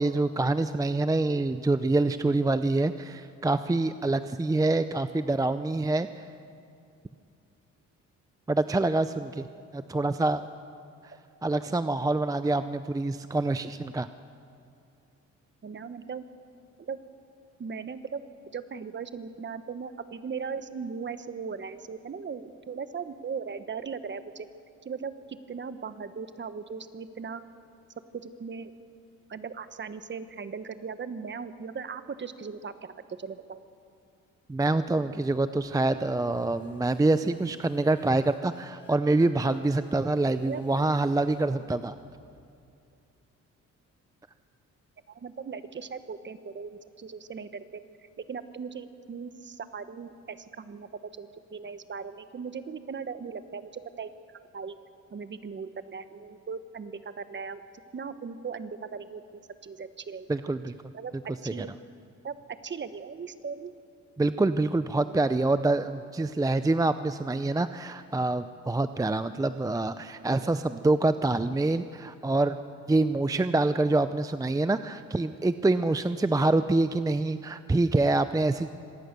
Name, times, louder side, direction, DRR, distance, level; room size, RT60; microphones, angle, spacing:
voice 1, 0.0-6.2 8.5-9.5 9.7-10.5 11.0-11.1 11.4-14.1 34.5-42.0 60.3-60.8 61.5-61.7 64.2-72.6 72.9-78.7, right 2 dB, 10° right, 11 dB, 0.6 m, -26 dB
voice 2, 15.6-16.2 16.8-17.0 17.6-18.2 18.5-24.5 24.8-27.4 28.1-28.7 29.3-33.6 40.4-40.7 45.1-47.8 48.3-50.9 51.2-54.1 54.5-54.8 55.1-57.6 57.9-59.2 59.6-60.3 60.9-61.1 61.4-61.7 62.2-63.7, right 5 dB, 40° right, 11 dB, 1.3 m, -38 dB
sound 1, 35.2-42.6, left 2 dB, 40° left, 6.6 m, -53 dB
25.5 x 18.5 x 6.8 m, 2.5 s
cardioid pair, 90°, 30 cm